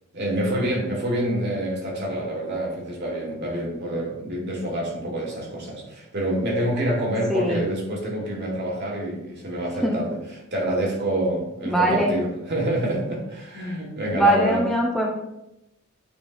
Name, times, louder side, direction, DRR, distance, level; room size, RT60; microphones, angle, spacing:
voice 1, 0.1-14.6, right 1 dB, 50° right, -1 dB, 1.6 m, -27 dB
voice 2, 7.3-7.6 9.8-10.0 11.7-12.2 14.1-15.1, right 1 dB, ahead, -2 dB, 0.5 m, -21 dB
8.4 x 4.4 x 2.5 m, 0.87 s
head